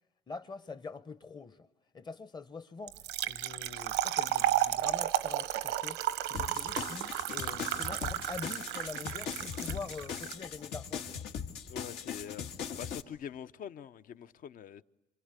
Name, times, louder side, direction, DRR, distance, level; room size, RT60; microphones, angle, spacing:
voice 1, 0.3-1.7 1.9-11.1, left 4 dB, 25° left, 0.9 m, -45 dB
Trickle dribble / Fill (with liquid), 2.9-10.3, right 13 dB, 90° right, 0.9 m, -33 dB
sound 1, 6.3-13.0, left 7 dB, 80° left, 2.1 m, -40 dB
voice 2, 11.7-12.4 12.8-14.8, left 9 dB, 55° left, 0.8 m, -44 dB
27.5 x 26.0 x 8.2 m
cardioid pair, 110°, 17 cm